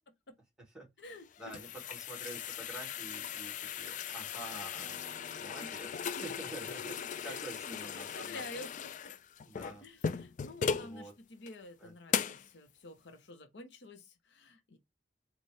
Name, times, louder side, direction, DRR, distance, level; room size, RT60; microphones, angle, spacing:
sound 1, 1.1-10.9 11.5-11.6 12.1-12.5, left 7 dB, 45° left, 0.3 m, -38 dB
voice 1, 1.4-5.1 5.4-5.9 6.2-8.5 9.4-9.9 10.7-11.1 11.8-12.2, right 1 dB, 5° right, 2.1 m, -48 dB
Acoustic guitar, 4.8-8.4, right 2 dB, 30° right, 1.4 m, -60 dB
voice 2, 5.6-5.9 7.2-8.9 9.8-14.8, left 2 dB, 85° left, 0.8 m, -49 dB
4.2 x 2.3 x 4.7 m
head